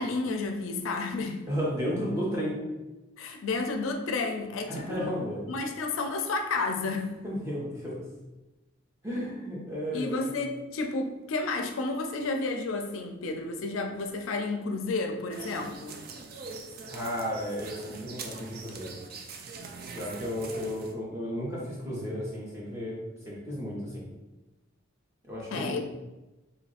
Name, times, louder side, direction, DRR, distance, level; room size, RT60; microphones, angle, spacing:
voice 1, 0.0-1.5 3.2-5.1 5.5-7.2 9.9-16.0 18.7-18.8 25.5-25.8, left 3 dB, 80° left, 5 dB, 0.4 m, -31 dB
voice 2, 1.5-2.6 4.7-5.4 7.2-8.0 9.0-10.2 16.8-19.0 19.9-23.0 23.3-24.0 25.3-25.8, equal, 15° right, -6 dB, 0.9 m, -33 dB
sound 1, 15.3-20.9, right 4 dB, 45° right, 0.3 m, -42 dB
3.1 x 2.4 x 3.9 m, 1.1 s
head